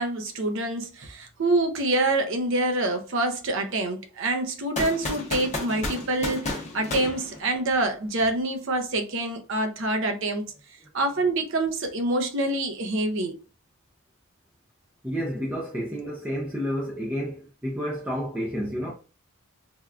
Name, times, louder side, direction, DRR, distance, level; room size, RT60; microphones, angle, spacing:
voice 1, 0.0-10.4 10.9-13.3, right 2 dB, 60° right, 0.5 m, -26 dB
sound 1, 4.8-7.9, left 2 dB, 30° left, 0.7 m, -32 dB
voice 2, 15.0-18.9, equal, 10° right, 0.4 m, -30 dB
3.4 x 2.2 x 2.3 m
head